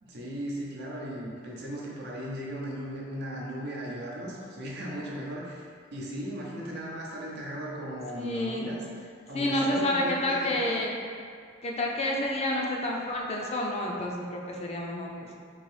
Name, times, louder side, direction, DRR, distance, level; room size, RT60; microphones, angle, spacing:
voice 1, 0.0-8.8 9.3-10.7, equal, 55° right, -4 dB, 0.7 m, -37 dB
voice 2, 8.2-8.7 9.3-11.0 11.6-15.3, left 1 dB, 30° left, -1 dB, 0.4 m, -29 dB
3.9 x 2.7 x 3.2 m, 2.2 s
head